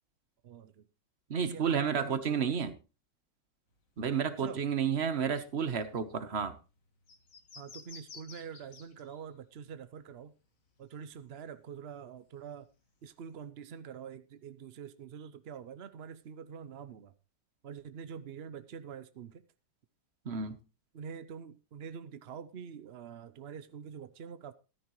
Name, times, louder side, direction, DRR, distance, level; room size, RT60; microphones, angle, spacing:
voice 1, 0.4-0.9 1.5-2.8 4.4-4.6 7.6-10.3 10.8-12.7 13.0-17.1 17.6-19.4 20.9-24.5, right 7 dB, 70° right, 0.5 m, -45 dB
voice 2, 1.3-2.7 4.0-6.6 20.2-20.6, right 7 dB, 40° right, 1.1 m, -31 dB
sound 1, 3.7-11.4 11.7-13.4, left 4 dB, 50° left, 2.0 m, -55 dB
14.0 x 13.5 x 3.1 m
omnidirectional pair, 2.0 m